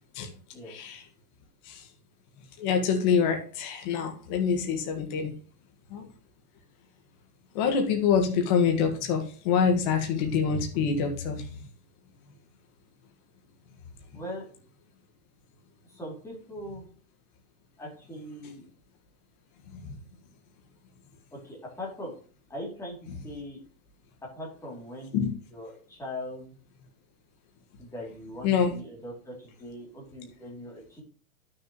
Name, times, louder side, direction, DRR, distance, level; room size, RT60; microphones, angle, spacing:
voice 1, 2.6-5.3 5.9-6.0 7.5-11.5 19.7-20.0 25.1-25.3 28.4-28.7, left 6 dB, 30° left, 4 dB, 1.7 m, -26 dB
voice 2, 14.1-14.5 15.8-16.9 17.8-18.6 21.3-22.1 22.5-23.0 23.2-23.6 24.4-26.6 27.8-31.0, left 1 dB, 5° left, -3 dB, 2.9 m, -40 dB
11.5 x 6.6 x 3.0 m, 0.42 s
supercardioid pair, 170°, 42 cm